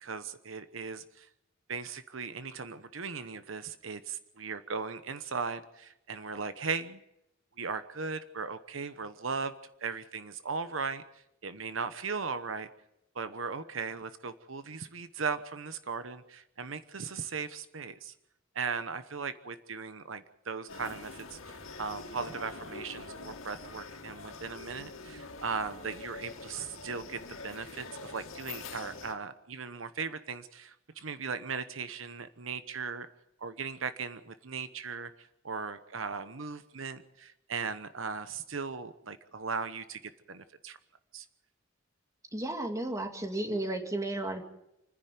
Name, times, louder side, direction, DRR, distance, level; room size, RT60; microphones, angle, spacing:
voice 1, 0.0-1.3 1.7-7.0 7.6-9.5 9.8-12.7 13.1-18.1 18.5-33.1 33.4-40.0 40.3-40.8 41.1-41.3, right 5 dB, 75° right, 11 dB, 1.0 m, -38 dB
sound 1, 20.7-29.1, left 3 dB, 85° left, 2.6 m, -45 dB
voice 2, 42.3-44.4, right 1 dB, 15° right, 4 dB, 2.5 m, -33 dB
28.5 x 10.5 x 9.4 m, 0.85 s
head